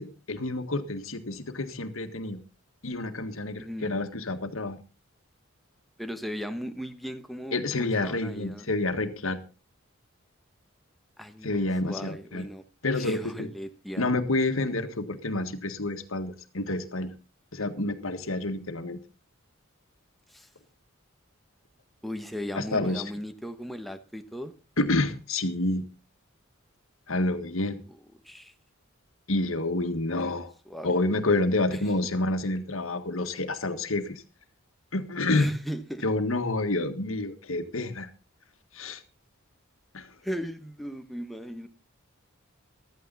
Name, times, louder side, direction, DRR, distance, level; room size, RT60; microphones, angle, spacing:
voice 1, 0.0-2.4 2.8-4.8 7.5-9.4 11.4-12.5 12.8-13.5 14.0-17.1 17.5-19.0 22.6-23.0 24.8-25.9 27.1-27.8 29.3-30.5 30.8-34.2 34.9-35.5 36.0-38.1 38.7-39.0 39.9-40.1, left 2 dB, 80° left, 8 dB, 1.8 m, -28 dB
voice 2, 3.6-3.9 6.0-8.7 11.2-12.6 12.9-14.1 20.3-20.5 22.0-24.5 28.2-28.5 30.1-30.9 31.7-31.8 35.3-36.0 40.2-41.7, equal, ahead, 7 dB, 1.2 m, -37 dB
15.5 x 13.0 x 4.1 m, 0.32 s
head